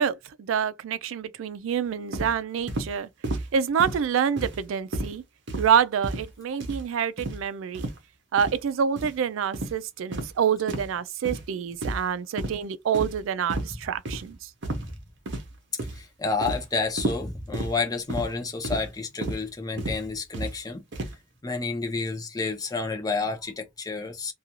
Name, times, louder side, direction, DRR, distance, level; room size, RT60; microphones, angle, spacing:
voice 1, 0.0-3.1 3.5-5.2 5.6-7.9 8.3-14.5, right 7 dB, 85° right, 0.4 m, -27 dB
sound 1, 2.1-2.3 2.7-2.9 3.2-3.5 3.8-4.0 4.4-4.6 4.9-5.1 5.5-5.7 6.0-6.3 6.6-6.8 7.2-7.4 7.7-8.0 8.4-8.6 9.0-9.1 9.5-9.7 10.1-10.3 10.7-10.9 11.2-11.4 11.8-12.1 12.4-12.6 12.9-13.2 13.5-13.7 14.1-14.2 14.6-14.9 15.3-15.5 15.8-16.0 16.4-16.6 17.0-17.2 17.5-17.7 18.1-18.3 18.6-18.9 19.2-19.4 19.8-20.0 20.3-20.5 20.9-21.1, right 1 dB, 65° right, 0.7 m, -31 dB
voice 2, 15.9-20.8 21.4-24.3, left 4 dB, 20° left, 0.5 m, -30 dB
2.5 x 2.3 x 2.8 m
head